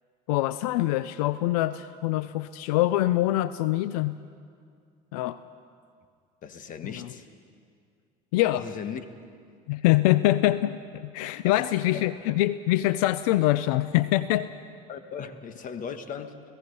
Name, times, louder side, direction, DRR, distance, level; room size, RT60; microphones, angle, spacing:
voice 1, 0.3-4.2 5.1-5.4 6.8-7.1 8.3-8.7 9.7-14.5, left 15 dB, 90° left, 0.5 m, -24 dB
voice 2, 6.4-7.2 8.5-9.0 11.4-12.1 14.9-16.4, left 7 dB, 45° left, 1.6 m, -38 dB
29.5 x 17.0 x 5.4 m
supercardioid pair, 105°, 19 cm